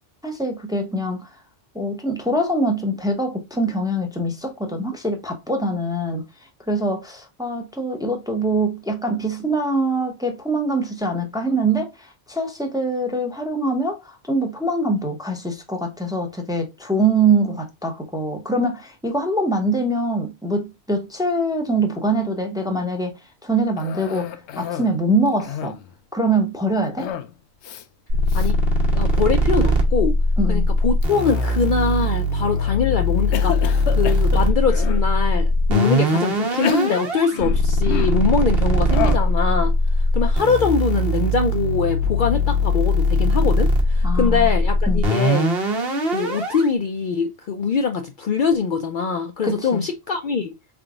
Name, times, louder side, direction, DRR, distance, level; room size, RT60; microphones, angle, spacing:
voice 1, 0.2-1.3 1.7-6.2 6.7-25.8 26.1-27.1 30.4-30.7 44.0-44.5 44.9-45.0 49.4-49.8, right 2 dB, 5° right, 0.7 m, -23 dB
Cough, 23.8-25.0 25.3-25.9 27.0-27.3 27.6-27.8 28.3-28.5 29.1-29.5 31.0-31.8 32.4-32.8 33.3-35.1 35.7-35.8 36.5-38.3 38.9-39.3, left 9 dB, 85° left, 0.9 m, -31 dB
sound 1, 28.1-46.7, left 1 dB, 60° right, 1.3 m, -20 dB
voice 2, 28.9-30.1 30.5-45.5 46.1-50.5, left 5 dB, 55° left, 0.6 m, -23 dB
3.8 x 3.5 x 2.3 m
omnidirectional pair, 1.1 m